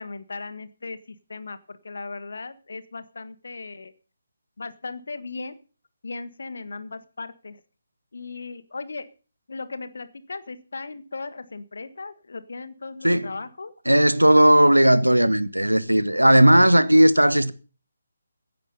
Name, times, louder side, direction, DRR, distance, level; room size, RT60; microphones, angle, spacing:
voice 1, 0.0-3.9 4.6-5.5 6.0-7.6 8.1-9.1 9.5-13.7, left 3 dB, 60° left, 1.6 m, -37 dB
voice 2, 13.9-17.5, right 1 dB, 85° right, 1.3 m, -16 dB
16.5 x 9.5 x 5.6 m
figure-of-eight pair, 145°, 0 cm